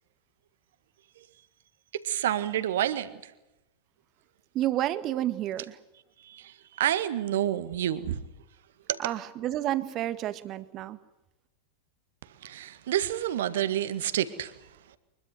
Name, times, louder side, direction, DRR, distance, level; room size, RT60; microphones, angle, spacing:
voice 1, 1.9-3.1 6.2-8.2 8.9-9.0 12.4-14.5, right 11 dB, 60° right, 13 dB, 1.8 m, -29 dB
voice 2, 4.5-5.8 9.0-11.0, right 13 dB, 35° right, 13 dB, 1.7 m, -30 dB
24.5 x 22.0 x 8.0 m, 0.94 s
figure-of-eight pair, 90°, 0 cm